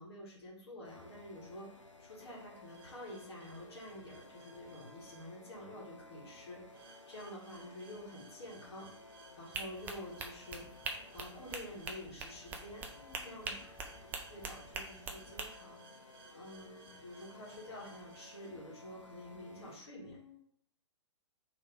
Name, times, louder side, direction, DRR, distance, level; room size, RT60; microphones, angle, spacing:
voice 1, 0.0-8.9 9.4-10.7 11.1-12.8 13.2-15.8 16.3-20.2, left 1 dB, 60° left, -4 dB, 1.8 m, -49 dB
sound 1, 0.8-19.8, left 2 dB, 85° left, 0.7 m, -57 dB
sound 2, 2.6-5.3 6.7-18.5, right 5 dB, 50° right, 0.9 m, -61 dB
sound 3, 9.5-15.5, right 4 dB, 15° right, 0.4 m, -43 dB
voice 2, 12.9-13.7 20.0-20.4, left 8 dB, 40° left, -4 dB, 1.9 m, -58 dB
3.4 x 3.3 x 4.7 m, 0.64 s
figure-of-eight pair, 115°, 15 cm